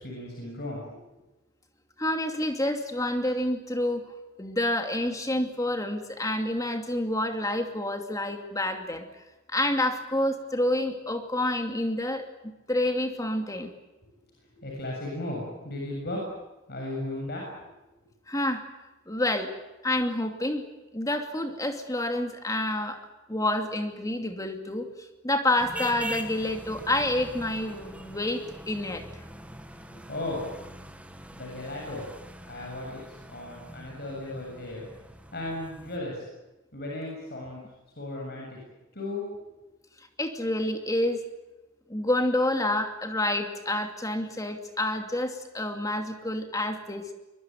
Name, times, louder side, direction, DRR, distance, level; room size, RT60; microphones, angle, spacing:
voice 1, 0.0-1.0 14.6-16.2 16.7-17.4 30.1-30.4 31.3-32.1 32.5-34.9 35.3-36.2 36.7-37.6 38.0-38.6 38.9-39.3, left 2 dB, 50° left, -1 dB, 7.2 m, -35 dB
voice 2, 2.0-4.0 4.4-9.1 9.5-13.7 18.3-18.6 19.1-19.5 19.8-20.7 20.9-23.0 23.3-29.0 40.2-41.2 41.9-47.1, left 1 dB, 15° left, 5 dB, 2.6 m, -28 dB
sound 1, 25.6-36.0, equal, 5° right, 1.8 m, -42 dB
23.5 x 22.5 x 9.3 m, 1.1 s
head